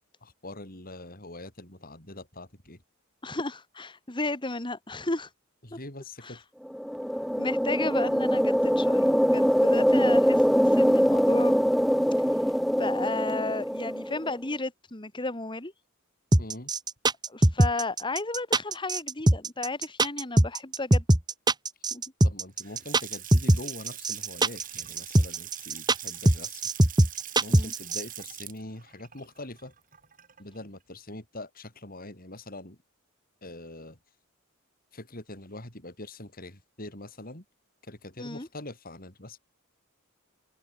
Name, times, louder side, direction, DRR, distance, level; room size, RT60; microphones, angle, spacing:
voice 1, 0.2-2.8 5.6-6.4 16.4-16.7 22.2-26.6 27.4-29.7 30.4-32.8 33.4-34.0 34.9-37.4 37.8-39.4, left 1 dB, 45° left, 6.5 m, -43 dB
voice 2, 3.2-5.3 5.7-5.8 6.2-6.4 7.4-11.6 12.8-15.7 17.3-21.0 21.9-22.0 27.5-27.7 38.2-38.5, left 2 dB, 20° left, 1.7 m, -33 dB
sound 1, 6.7-14.3, equal, ahead, 0.4 m, -23 dB
sound 2, 16.3-28.0, right 1 dB, 20° right, 1.6 m, -21 dB
Water tap faucet / Sink (filling or washing) / Splash splatter, 22.5-30.6, right 11 dB, 40° right, 5.7 m, -43 dB
head